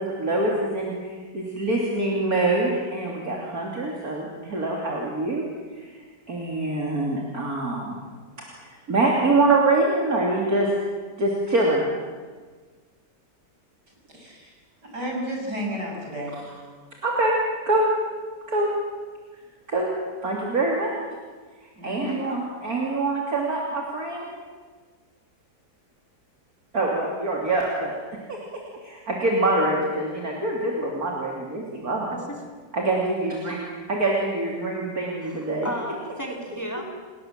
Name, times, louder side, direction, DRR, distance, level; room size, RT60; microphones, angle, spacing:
voice 1, 0.0-5.4 5.7-5.9 6.3-8.0 8.7-10.7 11.2-11.9 17.0-17.3 17.7-17.9 18.5-18.7 19.7-19.9 20.2-21.0 21.8-24.2 26.7-28.0 28.3-28.4 28.8-32.1 32.7-33.6 33.9-35.7 36.8-36.9, right 2 dB, 60° right, -2 dB, 3.4 m, -24 dB
voice 2, 14.1-14.6 14.8-16.7 21.8-22.2, equal, 75° right, 0 dB, 6.9 m, -32 dB
voice 3, 35.2-36.8, equal, 10° left, 1 dB, 3.2 m, -34 dB
29.0 x 19.5 x 7.5 m, 1.5 s
omnidirectional pair, 1.8 m